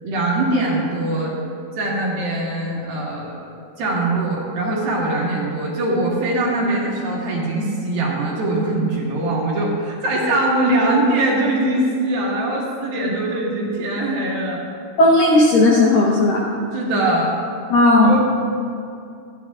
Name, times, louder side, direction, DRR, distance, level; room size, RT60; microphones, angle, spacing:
voice 1, 0.0-1.4 1.8-3.4 3.8-14.6 16.7-17.3 18.0-18.2, right 2 dB, 60° right, -4 dB, 3.3 m, -22 dB
voice 2, 15.0-16.4 17.7-18.2, left 2 dB, 70° left, -4 dB, 2.2 m, -14 dB
26.5 x 9.0 x 2.4 m, 2.4 s
omnidirectional pair, 5.1 m